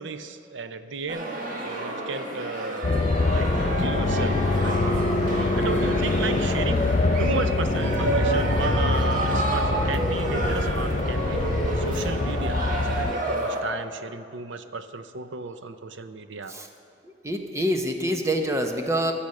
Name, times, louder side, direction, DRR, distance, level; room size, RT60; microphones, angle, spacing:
voice 1, 0.0-5.0 5.3-6.9 7.2-16.5, right 4 dB, 75° right, 10 dB, 0.6 m, -34 dB
sound 1, 1.1-13.6, right 2 dB, 45° right, 1.4 m, -30 dB
sound 2, 2.8-13.1, left 2 dB, 35° left, 0.5 m, -24 dB
voice 2, 17.0-19.1, equal, 15° right, 4 dB, 0.9 m, -26 dB
15.0 x 7.1 x 6.4 m, 2.4 s
head